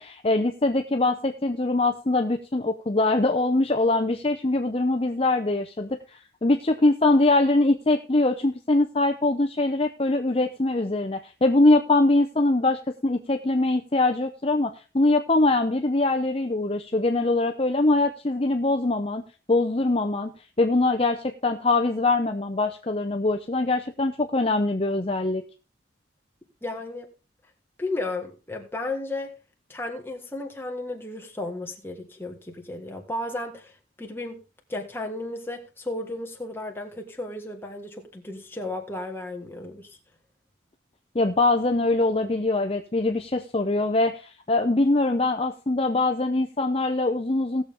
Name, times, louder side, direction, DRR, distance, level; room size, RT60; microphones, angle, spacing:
voice 1, 0.0-20.3 20.6-25.4 41.1-47.6, left 2 dB, 30° left, 0.7 m, -23 dB
voice 2, 26.6-27.1 27.8-29.4 29.7-33.7 34.0-34.4 34.7-40.0, left 2 dB, 10° left, 1.7 m, -34 dB
18.0 x 7.0 x 3.6 m
head